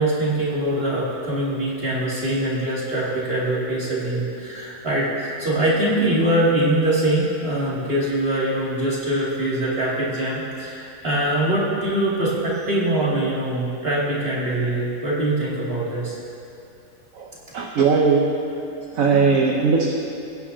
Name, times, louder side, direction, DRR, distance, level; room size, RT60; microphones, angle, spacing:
voice 1, 0.0-16.2, right 1 dB, 40° right, -7 dB, 2.8 m, -23 dB
voice 2, 17.1-18.3 18.9-19.9, right 5 dB, 65° right, -1 dB, 1.3 m, -19 dB
22.0 x 9.9 x 2.8 m, 2.6 s
omnidirectional pair, 1.6 m